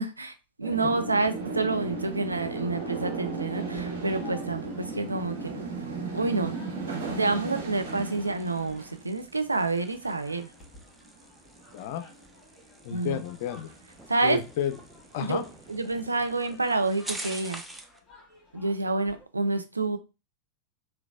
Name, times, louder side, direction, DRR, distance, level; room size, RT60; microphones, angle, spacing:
voice 1, 0.0-5.5 6.1-6.6 7.1-10.5 12.9-13.2 14.1-14.4 15.2-15.4 15.7-17.6 18.5-20.0, right 3 dB, 80° right, 9 dB, 0.4 m, -28 dB
sound 1, 0.6-10.1 10.4-10.7 11.0-11.3 11.6-12.3 13.0-13.2 13.5-14.1 14.5-14.6 14.8-16.1, right 3 dB, 60° right, 0.8 m, -36 dB
sound 2, 0.8-19.2, left 3 dB, 15° left, 1.6 m, -55 dB
sound 3, 7.5-18.0, right 2 dB, 10° right, 0.5 m, -46 dB
voice 2, 11.7-12.1 12.8-13.7 14.2-14.8 15.1-15.4, left 10 dB, 50° left, 10 dB, 0.4 m, -31 dB
3.8 x 2.3 x 2.3 m, 0.29 s
figure-of-eight pair, 90°, 0 cm